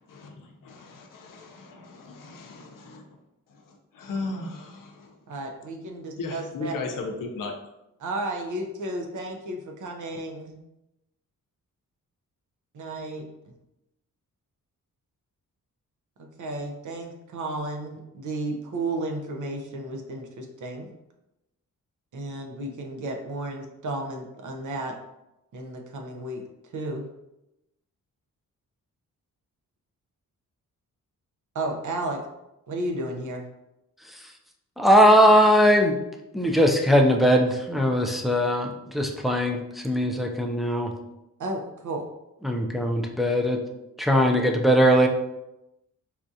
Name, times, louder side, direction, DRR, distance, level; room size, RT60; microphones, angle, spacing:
voice 1, 0.1-3.0 3.5-5.2 6.2-7.5, left 3 dB, 70° left, 2 dB, 0.6 m, -36 dB
voice 2, 5.3-6.8 8.0-10.6 12.7-13.2 16.2-20.9 22.1-25.0 25.5-26.4 26.7-27.1 31.5-32.2 32.7-33.5 41.4-42.0, right 2 dB, 60° right, 3 dB, 0.6 m, -33 dB
voice 3, 34.8-36.0 36.3-40.9 42.4-43.6 44.0-45.1, equal, ahead, 2 dB, 0.3 m, -20 dB
4.2 x 2.4 x 2.6 m, 0.90 s
cardioid pair, 105°, 33 cm